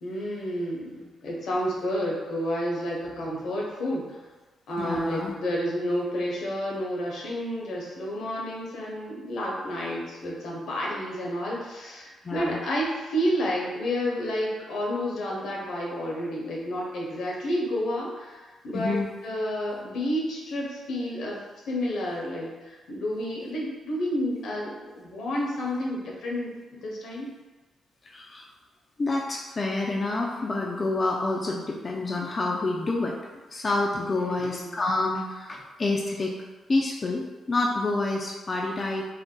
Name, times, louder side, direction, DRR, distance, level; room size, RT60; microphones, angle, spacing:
voice 1, 0.0-4.2 4.7-21.3 21.7-27.3 34.1-34.8, equal, 75° left, -3 dB, 0.8 m, -30 dB
voice 2, 4.8-5.3 12.2-12.6 18.7-19.1 28.0-28.4 29.0-33.1 33.5-36.3 36.7-39.1, left 2 dB, 40° left, -2 dB, 0.4 m, -28 dB
2.6 x 2.1 x 3.6 m, 1.2 s
supercardioid pair, 65°, 0 cm